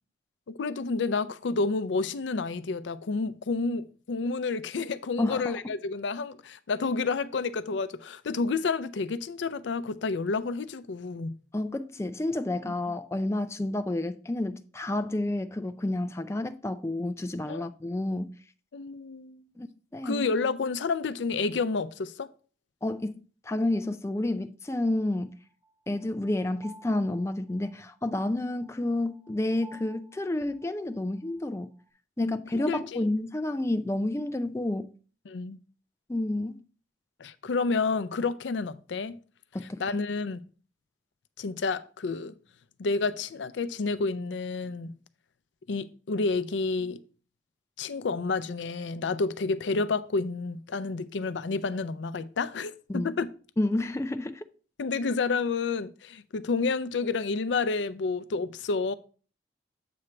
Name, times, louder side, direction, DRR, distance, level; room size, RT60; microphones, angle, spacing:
voice 1, 0.5-11.4 12.7-12.8 17.5-17.7 18.7-19.4 20.0-22.3 32.2-33.1 35.3-35.6 37.2-39.2 39.8-40.4 41.4-42.3 42.8-44.9 45.7-47.0 47.8-53.3 54.8-58.9, left 4 dB, 85° left, 0.5 m, -30 dB
voice 2, 5.2-5.6 11.5-18.3 19.6-19.7 19.9-20.3 22.8-25.3 25.9-31.7 32.2-34.9 36.1-36.6 39.5-39.8 52.9-53.1 53.6-54.4, left 1 dB, 15° left, 0.4 m, -30 dB
sound 1, 25.2-31.9, right 3 dB, 25° right, 1.5 m, -56 dB
7.8 x 3.2 x 5.8 m
head